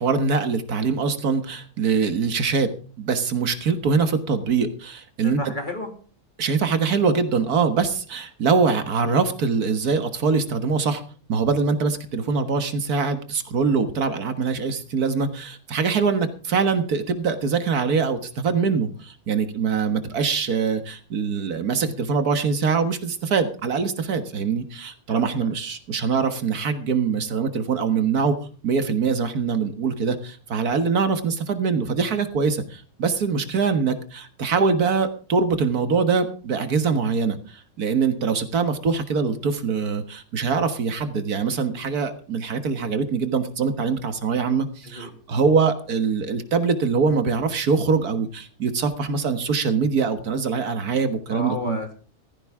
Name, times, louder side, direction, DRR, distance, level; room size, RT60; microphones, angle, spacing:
voice 1, 0.0-2.7 3.0-5.4 6.4-11.0 11.3-28.4 28.6-51.8, right 5 dB, 80° right, 9 dB, 2.0 m, -23 dB
voice 2, 5.2-5.9 25.1-25.5 44.8-45.1 51.3-51.9, left 2 dB, 30° left, 4 dB, 2.8 m, -32 dB
15.0 x 15.0 x 3.6 m, 0.40 s
omnidirectional pair, 1.6 m